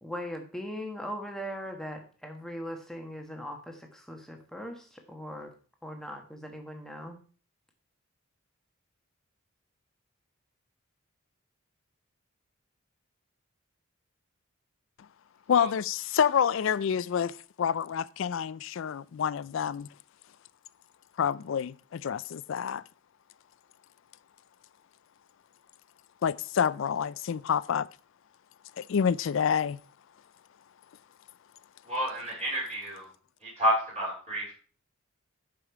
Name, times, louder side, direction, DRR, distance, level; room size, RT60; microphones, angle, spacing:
voice 1, 0.0-5.5 5.8-7.2, equal, ahead, 1.2 m, -39 dB
voice 2, 15.5-19.9 21.2-22.8 26.2-27.9 28.8-29.8, left 7 dB, 65° left, 0.3 m, -28 dB
voice 3, 31.9-33.1 33.4-34.5, equal, 30° right, 3.9 m, -30 dB
11.0 x 5.2 x 4.6 m
head